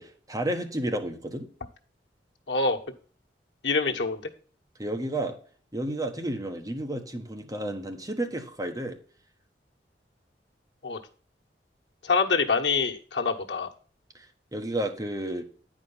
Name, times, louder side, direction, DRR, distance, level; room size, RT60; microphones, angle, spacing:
voice 1, 0.0-1.5 3.9-4.0 4.8-5.3 5.7-9.0 14.5-15.4, right 1 dB, 20° right, 3 dB, 1.3 m, -31 dB
voice 2, 2.5-2.8 3.6-4.2 10.8-11.0 12.0-13.7, left 4 dB, 85° left, 3 dB, 1.2 m, -25 dB
9.4 x 5.0 x 5.6 m, 0.43 s
head